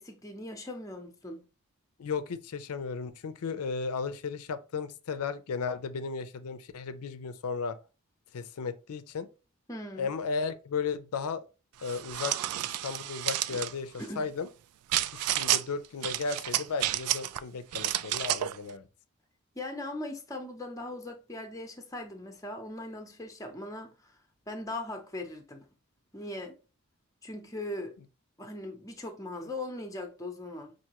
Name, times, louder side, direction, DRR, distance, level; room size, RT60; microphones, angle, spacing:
voice 1, 0.0-1.4 9.7-10.1 13.5-13.6 14.0-14.3 19.6-24.1 24.5-25.7 26.1-26.6 27.2-27.9 28.4-30.7, left 1 dB, 15° left, 0.6 m, -39 dB
voice 2, 2.0-7.8 8.3-9.3 10.0-11.5 11.8-14.5 15.1-18.8, left 5 dB, 80° left, 0.4 m, -35 dB
Window Blinds, 11.8-13.7 14.9-15.6 16.0-17.4 17.7-18.6, right 13 dB, 90° right, 0.3 m, -30 dB
5.6 x 2.6 x 2.9 m
head